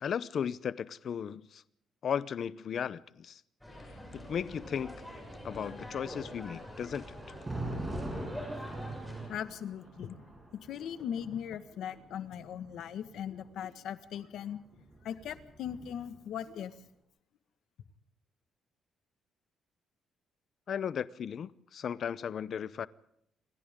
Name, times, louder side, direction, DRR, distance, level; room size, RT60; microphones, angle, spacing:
voice 1, 0.0-1.6 2.0-3.4 3.9-5.0 5.4-7.2 20.7-22.9, left 8 dB, 40° left, 0.7 m, -36 dB
sound 1, 3.6-9.3, equal, 5° left, 6.7 m, -44 dB
Thunder, 6.3-13.4 14.5-16.2, right 1 dB, 15° right, 6.8 m, -43 dB
voice 2, 9.3-10.2 10.7-14.6 15.0-16.7, left 9 dB, 65° left, 1.6 m, -39 dB
28.5 x 24.5 x 3.7 m
cardioid pair, 170°, 0 cm